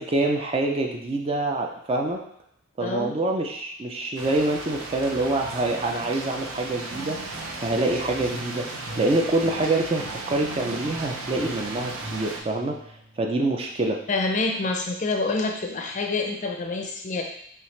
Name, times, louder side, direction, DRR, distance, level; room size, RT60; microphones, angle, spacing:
voice 1, 0.0-2.2 2.8-7.2 7.6-8.7 9.0-12.8 13.2-14.0, right 2 dB, 25° right, 2 dB, 0.4 m, -26 dB
voice 2, 2.8-3.1 14.1-17.2, left 3 dB, 35° left, 2 dB, 0.5 m, -27 dB
sound 1, 4.2-12.4, right 3 dB, 75° right, 0.6 m, -36 dB
sound 2, 6.9-13.3, right 1 dB, 50° right, 1.5 m, -42 dB
5.7 x 2.4 x 3.2 m, 0.71 s
head